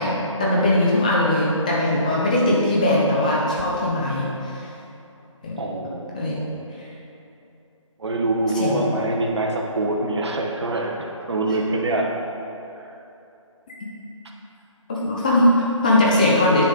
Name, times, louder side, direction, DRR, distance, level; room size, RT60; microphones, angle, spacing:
voice 1, 0.0-4.7 5.4-5.6 6.1-6.4 6.8-6.9 8.5-8.8 13.7-13.8 14.9-16.6, left 1 dB, 15° left, -5 dB, 0.5 m, -20 dB
voice 2, 5.6-6.5 8.0-12.1, right 2 dB, 55° right, 1 dB, 1.1 m, -25 dB
9.4 x 5.1 x 3.8 m, 2.8 s
figure-of-eight pair, 160°, 17 cm